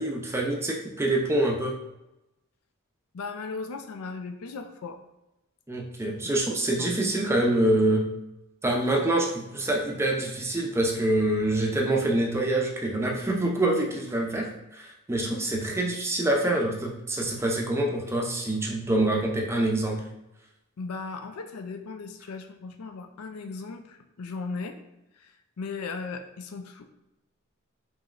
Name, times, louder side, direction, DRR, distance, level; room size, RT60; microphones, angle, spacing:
voice 1, 0.0-1.7 5.7-8.1 8.6-20.0, right 1 dB, 10° right, 0 dB, 0.5 m, -26 dB
voice 2, 3.1-5.0 6.8-6.9 20.8-24.8 25.2-25.3 25.6-26.8, left 4 dB, 85° left, 7 dB, 0.5 m, -37 dB
5.1 x 3.0 x 2.4 m, 0.94 s
head